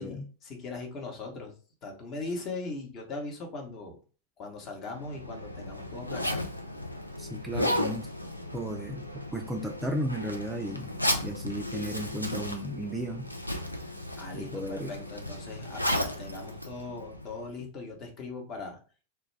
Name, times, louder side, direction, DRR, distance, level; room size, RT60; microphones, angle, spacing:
voice 1, 0.0-1.5 1.8-4.0 4.4-6.4 14.2-18.8, left 3 dB, 35° left, 1 dB, 0.8 m, -39 dB
Zipper (clothing), 4.9-17.5, left 1 dB, 90° left, 0.4 m, -34 dB
voice 2, 7.2-8.1 8.5-10.9 11.2-13.3 14.3-14.9, equal, 10° right, 2 dB, 0.4 m, -34 dB
2.2 x 2.2 x 3.2 m, 0.37 s
figure-of-eight pair, 90°, 0 cm